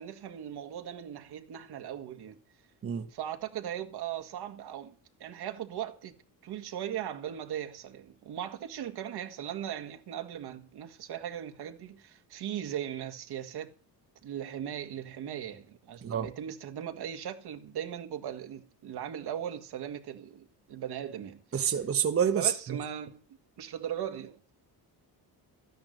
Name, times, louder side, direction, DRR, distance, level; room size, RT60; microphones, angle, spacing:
voice 1, 0.0-2.4 3.1-6.2 6.4-13.7 14.2-21.7 22.4-23.2 23.6-24.5, right 10 dB, 75° right, 2.0 m, -38 dB
voice 2, 21.5-22.5, right 8 dB, 35° right, 1.1 m, -27 dB
13.5 x 10.0 x 6.6 m
cardioid pair, 160°, 39 cm